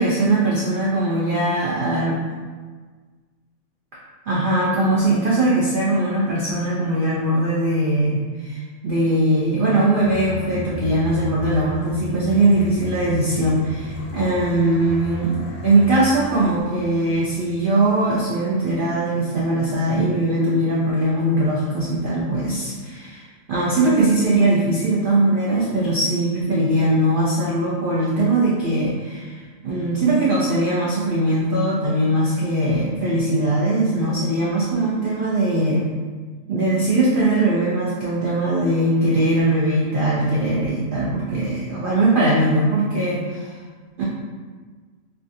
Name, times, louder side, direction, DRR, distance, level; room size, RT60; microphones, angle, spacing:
voice 1, 0.0-2.2 4.3-35.8 36.5-43.6 44.0-44.1, right 1 dB, 65° right, -6 dB, 0.5 m, -20 dB
sound 1, 10.0-18.2, right 1 dB, 60° left, 0.8 m, -34 dB
3.2 x 2.3 x 2.6 m, 1.5 s
omnidirectional pair, 1.4 m